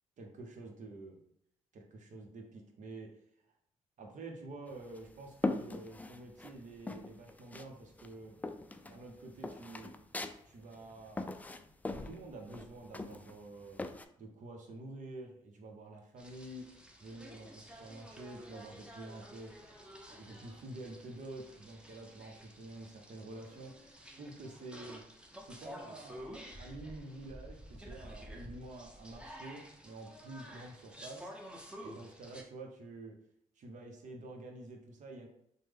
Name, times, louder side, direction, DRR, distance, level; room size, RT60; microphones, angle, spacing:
voice 1, 0.2-1.2 1.7-3.2 4.0-8.4 8.8-9.9 10.5-11.2 12.0-13.8 14.2-16.7 17.0-19.5 20.1-23.7 24.2-25.0 25.4-26.2 26.6-31.3 31.8-33.2 33.6-35.3, right 2 dB, 55° right, 2 dB, 0.8 m, -48 dB
sound 1, 4.7-6.5 6.9-7.7 8.0-14.1, left 2 dB, 10° left, 0.3 m, -40 dB
sound 2, 16.2-32.4, equal, 5° right, 0.7 m, -51 dB
3.1 x 2.1 x 3.4 m, 0.72 s
hypercardioid pair, 55°, 16 cm